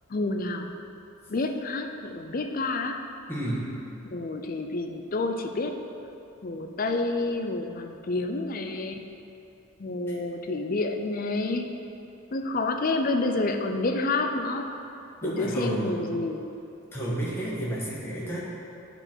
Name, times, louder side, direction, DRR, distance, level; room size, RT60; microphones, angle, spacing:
voice 1, 0.1-0.7 1.3-3.0 4.1-5.7 6.4-9.0 9.8-11.7 12.3-14.7 15.2-16.5, left 2 dB, 40° left, 5 dB, 0.4 m, -29 dB
voice 2, 3.3-3.7 10.1-10.2 15.2-15.9 16.9-18.4, right 1 dB, 10° left, -7 dB, 1.3 m, -30 dB
10.0 x 4.0 x 4.4 m, 2.8 s
head